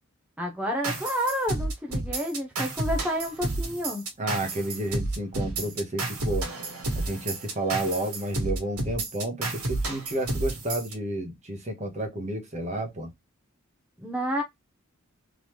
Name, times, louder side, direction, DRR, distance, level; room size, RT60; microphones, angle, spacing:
voice 1, 0.4-4.0 14.0-14.4, equal, 5° right, 0.8 m, -30 dB
sound 1, 0.8-10.9, right 2 dB, 85° right, 1.6 m, -31 dB
voice 2, 4.2-6.5 7.0-13.1, right 1 dB, 35° right, 1.2 m, -31 dB
3.9 x 3.4 x 3.1 m
head